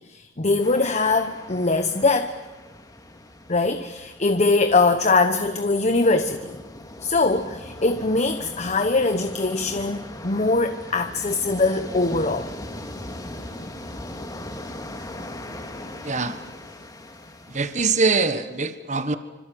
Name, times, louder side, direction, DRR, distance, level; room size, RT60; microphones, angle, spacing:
voice 1, 0.1-2.4 3.5-6.6 7.0-12.5, left 3 dB, 35° left, 1.0 m, -22 dB
sound 1, 0.6-17.9, left 1 dB, 20° left, 2.3 m, -39 dB
voice 2, 16.0-16.4 17.5-19.1, right 4 dB, 40° right, 1.3 m, -23 dB
26.5 x 26.0 x 7.8 m
head